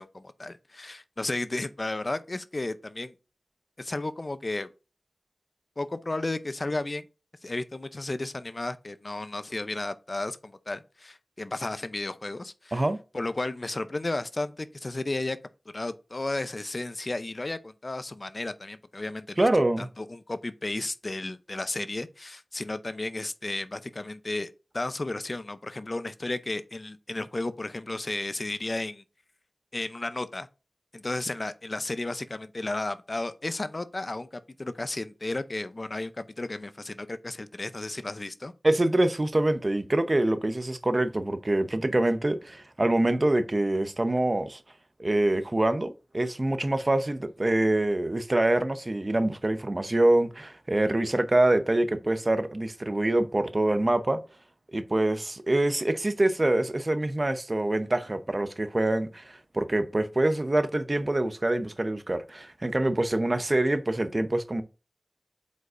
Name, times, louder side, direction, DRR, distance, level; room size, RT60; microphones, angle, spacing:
voice 1, 0.0-3.1 3.8-4.7 5.8-7.0 7.4-12.8 13.1-15.4 15.7-19.5 19.8-29.0 29.7-30.5 30.9-38.5, left 2 dB, 50° left, 0.5 m, -33 dB
voice 2, 19.4-19.9 38.6-44.6 45.0-54.2 54.7-64.6, right 1 dB, 40° right, 0.8 m, -25 dB
7.8 x 5.3 x 2.5 m
wide cardioid pair, 50°, 0 cm